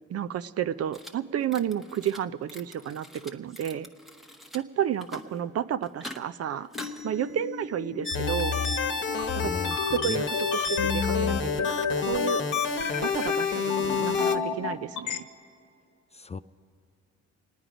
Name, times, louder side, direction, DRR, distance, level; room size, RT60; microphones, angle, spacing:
voice 1, 0.1-3.9 4.5-6.7 7.0-8.6 9.4-9.5 9.9-12.4 13.0-15.3, right 10 dB, 55° right, 13 dB, 0.5 m, -31 dB
sound 1, 0.9-1.1 1.4-2.2 2.5-4.6 4.9-5.4 5.8-6.2 6.6-8.1, equal, ahead, 1.1 m, -44 dB
sound 2, 6.7-15.2, left 6 dB, 75° left, 1.1 m, -31 dB
sound 3, 8.0-14.4, left 5 dB, 40° left, 1.1 m, -29 dB
voice 2, 9.4-10.2 16.1-16.4, left 5 dB, 20° left, 12 dB, 0.3 m, -36 dB
27.0 x 9.5 x 5.1 m, 2.4 s
cardioid pair, 90°, 30 cm